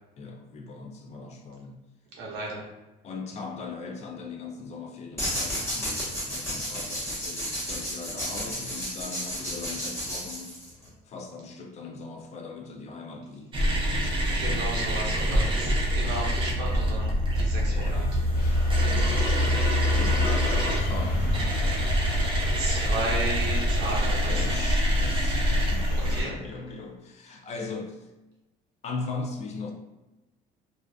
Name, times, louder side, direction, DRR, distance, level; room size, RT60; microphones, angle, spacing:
voice 1, 0.2-1.9 3.0-10.5 11.1-14.1 15.2-15.5 16.0-16.2 17.6-18.2 18.8-21.8 24.3-28.1 28.8-29.7, left 4 dB, 40° left, 3 dB, 0.4 m, -39 dB
voice 2, 2.1-2.6 14.4-18.1 18.3-18.5 22.5-24.7 26.0-26.3, right 2 dB, 65° right, -3 dB, 0.8 m, -34 dB
sound 1, 5.2-10.9, equal, 15° left, 1.0 m, -32 dB
sound 2, 13.5-26.2, equal, 30° right, 0.5 m, -25 dB
sound 3, 18.3-26.3, left 2 dB, 65° left, 0.9 m, -43 dB
2.4 x 2.3 x 2.3 m, 1.0 s
cardioid pair, 120°, 18 cm